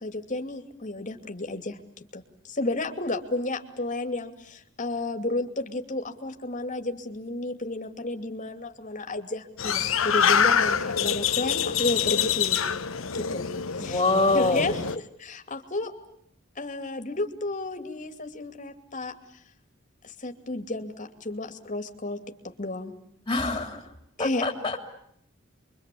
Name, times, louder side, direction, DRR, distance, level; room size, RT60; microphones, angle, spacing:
voice 1, 0.0-1.8 2.1-12.7 13.1-13.4 13.7-14.0 14.3-14.8 15.2-15.9 16.6-19.2 20.0-22.2 22.4-22.9 24.2-24.5, left 2 dB, 40° left, 6 dB, 2.7 m, -32 dB
sound 1, 9.6-15.0, left 7 dB, 75° left, 1.1 m, -25 dB
voice 2, 13.8-14.6 23.3-23.8 24.2-24.8, left 2 dB, 20° left, 4 dB, 3.4 m, -25 dB
28.0 x 24.0 x 8.6 m, 0.69 s
head